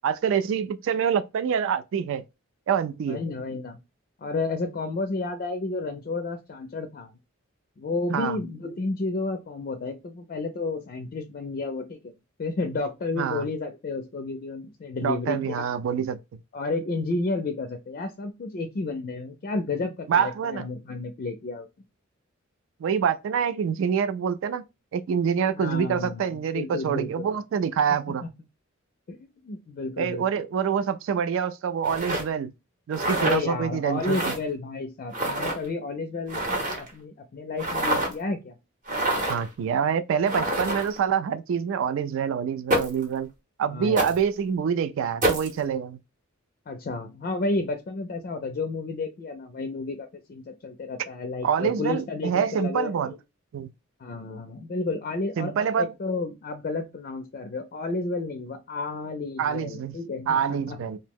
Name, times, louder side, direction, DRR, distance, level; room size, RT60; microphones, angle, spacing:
voice 1, 0.0-2.2 2.7-3.2 8.1-8.4 13.2-13.5 15.0-16.4 20.1-20.6 22.8-24.6 24.9-28.2 30.0-32.5 32.9-34.2 39.3-43.3 43.6-46.0 51.4-53.1 53.5-53.7 55.4-55.9 59.4-59.9 60.3-61.0, right 7 dB, 65° right, 0.3 m, -26 dB
voice 2, 3.1-3.8 4.2-7.1 7.8-12.1 12.4-15.7 16.5-21.7 25.5-27.3 28.1-28.2 29.1-30.4 33.2-38.6 43.7-44.2 46.7-53.2 54.0-60.8, left 3 dB, 45° left, 0.4 m, -31 dB
sound 1, 31.8-32.2 32.9-33.4 34.0-34.4 35.1-35.6 36.3-36.9 37.6-38.1 38.9-39.5 40.3-41.0 42.7-43.0 44.0-44.2 45.2-45.5, right 1 dB, 40° right, 0.8 m, -26 dB
2.7 x 2.0 x 3.5 m
head